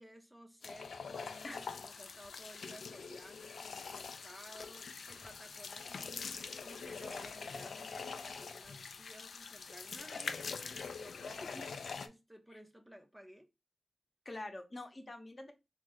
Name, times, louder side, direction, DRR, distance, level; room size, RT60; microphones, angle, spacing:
voice 1, 0.0-13.5, equal, 5° right, 0.5 m, -55 dB
sound 1, 0.6-12.1, left 5 dB, 85° left, 0.3 m, -44 dB
voice 2, 14.2-15.5, left 2 dB, 40° left, 0.8 m, -45 dB
3.0 x 2.5 x 3.7 m
cardioid pair, 60°, 0 cm